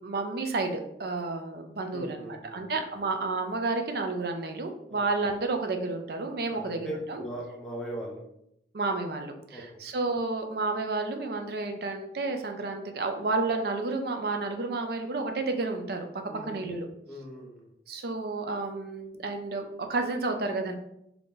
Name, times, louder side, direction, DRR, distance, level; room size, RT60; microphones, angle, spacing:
voice 1, 0.0-7.2 8.7-16.1 16.5-16.9 17.9-20.7, right 3 dB, 60° right, 5 dB, 0.5 m, -31 dB
voice 2, 1.9-2.6 4.9-5.0 6.5-8.2 9.5-9.6 16.3-16.6 17.0-17.7, right 1 dB, 5° left, -3 dB, 0.9 m, -39 dB
3.9 x 2.9 x 3.7 m, 0.79 s
head